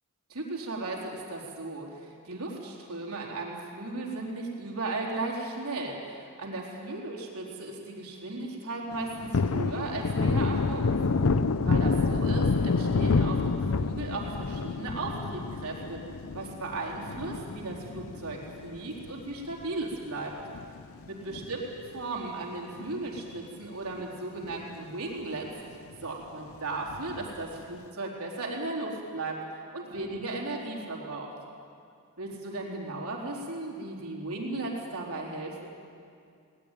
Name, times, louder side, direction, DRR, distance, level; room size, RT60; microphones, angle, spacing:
voice 1, 0.3-11.0 11.6-16.0 16.3-20.4 21.1-25.5 26.0-29.4 29.7-31.3 32.2-35.6, right 2 dB, 75° right, -2 dB, 4.0 m, -36 dB
Thunder, 8.9-19.7 20.0-20.1 20.5-22.0 22.3-22.4 22.8-23.6 24.0-24.1 24.4-24.5 26.9-27.4, left 4 dB, 65° left, 0.6 m, -28 dB
20.0 x 19.0 x 9.2 m, 2.4 s
head